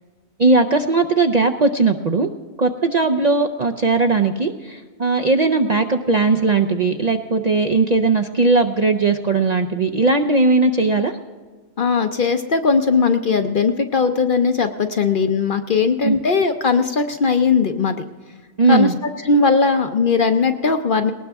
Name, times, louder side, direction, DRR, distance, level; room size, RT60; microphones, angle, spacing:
voice 1, 0.4-2.3 2.6-11.2 16.0-16.2 18.6-18.9, right 3 dB, 45° right, 4 dB, 0.5 m, -18 dB
voice 2, 11.8-18.0 18.7-18.9 19.2-21.1, left 5 dB, 50° left, 8 dB, 0.7 m, -18 dB
19.5 x 19.0 x 3.5 m, 1.5 s
omnidirectional pair, 1.4 m